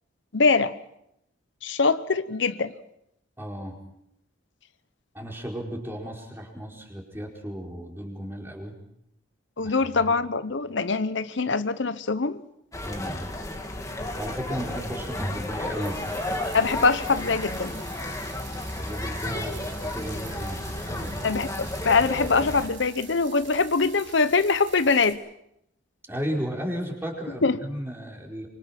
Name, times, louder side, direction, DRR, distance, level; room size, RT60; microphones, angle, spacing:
voice 1, 0.3-0.7 1.6-2.7 9.6-12.4 16.5-17.7 21.2-25.2 27.4-27.6, left 4 dB, 70° left, 12 dB, 0.9 m, -23 dB
voice 2, 3.4-3.8 5.1-8.7 9.6-9.8 12.8-13.3 14.2-16.0 18.7-21.2 26.1-28.5, equal, 10° right, -1 dB, 4.7 m, -34 dB
sound 1, 12.7-22.7, left 1 dB, 15° left, 2.1 m, -32 dB
sound 2, 15.8-25.1, right 7 dB, 90° right, 5.6 m, -46 dB
25.5 x 25.0 x 5.9 m, 0.78 s
head